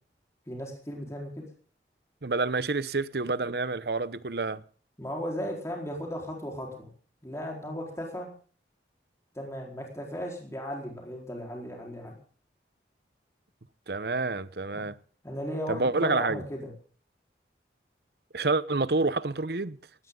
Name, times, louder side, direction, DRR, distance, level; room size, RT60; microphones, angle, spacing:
voice 1, 0.5-1.4 5.0-6.9 7.2-8.3 9.3-12.1 14.7-14.8 15.2-16.6, equal, 15° left, 4.5 m, -36 dB
voice 2, 2.2-4.6 13.9-15.0 15.7-16.4 18.3-19.8, right 3 dB, 65° right, 0.9 m, -28 dB
18.5 x 17.5 x 3.9 m
head